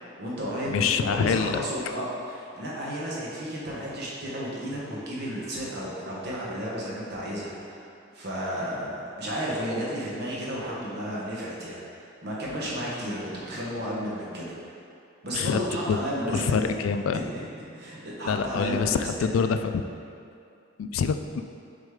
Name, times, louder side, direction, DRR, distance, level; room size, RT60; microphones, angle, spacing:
voice 1, 0.0-7.9 8.1-14.7 15.2-16.8 17.1-19.4, equal, 55° right, -6 dB, 1.2 m, -33 dB
voice 2, 0.7-1.6 15.3-15.6 15.9-16.0 16.3-17.2 18.2-19.8 20.8-21.4, left 6 dB, 90° left, 8 dB, 0.3 m, -25 dB
6.4 x 4.2 x 3.7 m, 2.5 s
head